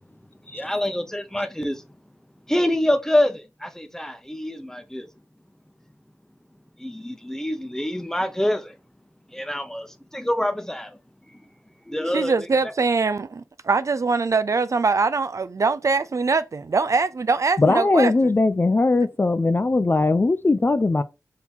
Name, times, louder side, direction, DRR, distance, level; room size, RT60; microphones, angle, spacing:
voice 1, 0.5-1.8 2.5-5.1 6.8-8.7 9.3-11.0 11.3-11.4 11.9-12.5, left 1 dB, 10° left, 0.8 m, -26 dB
voice 2, 12.1-18.1, right 4 dB, 55° right, 0.4 m, -22 dB
voice 3, 17.6-21.0, left 3 dB, 35° left, 0.4 m, -19 dB
3.7 x 2.8 x 4.3 m
cardioid pair, 45°, 6 cm